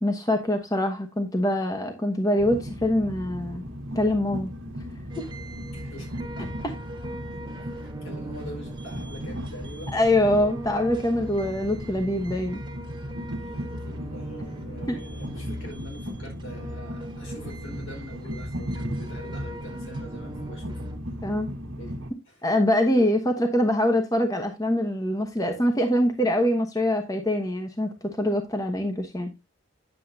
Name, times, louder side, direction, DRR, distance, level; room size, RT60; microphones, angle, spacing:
voice 1, 0.0-3.6 3.9-4.5 5.2-5.3 9.9-12.6 14.9-15.0 21.2-21.5 22.4-29.3, left 1 dB, 15° left, 1.1 m, -24 dB
Train, 2.4-22.1, equal, 70° right, 1.4 m, -36 dB
sound 1, 5.1-21.0, right 2 dB, 25° right, 1.4 m, -43 dB
voice 2, 5.7-6.7 7.8-10.0 13.4-20.8 21.7-22.0 22.2-22.5, left 1 dB, 80° left, 4.6 m, -44 dB
10.0 x 7.3 x 2.7 m
head